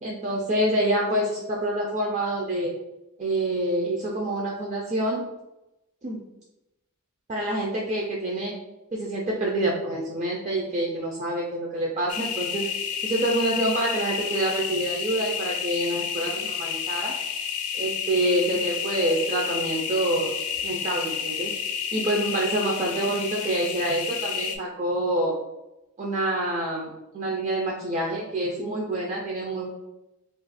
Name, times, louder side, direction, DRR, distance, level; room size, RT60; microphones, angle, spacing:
voice 1, 0.0-2.7 3.2-5.2 6.0-6.2 7.3-8.6 8.9-12.7 13.0-17.2 17.7-20.3 20.6-21.5 21.9-25.4 26.0-29.7, right 1 dB, 30° right, -3 dB, 0.4 m, -27 dB
sound 1, 12.1-24.6, left 7 dB, 75° left, 0.4 m, -30 dB
2.6 x 2.4 x 4.0 m, 0.95 s
head